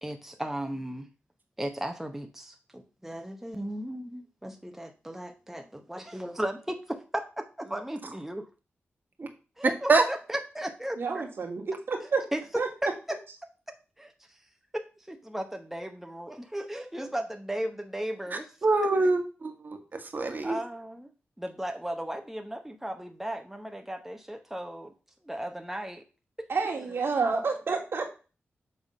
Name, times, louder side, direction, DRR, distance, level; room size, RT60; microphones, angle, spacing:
voice 1, 0.0-1.1 1.6-6.8 7.1-8.5 9.6-11.2 12.0-12.4 12.8-12.9 13.7-14.1 14.7-18.5 18.8-18.9 20.4-21.1 21.4-24.9 25.2-26.0, right 1 dB, 5° right, 4 dB, 0.9 m, -36 dB
voice 2, 11.0-12.2 12.6-12.7 26.5-28.1, right 4 dB, 65° right, 0 dB, 2.0 m, -29 dB
voice 3, 18.6-20.6, right 3 dB, 45° right, 5 dB, 1.5 m, -25 dB
7.2 x 3.7 x 5.3 m, 0.33 s
cardioid pair, 80°, 4 cm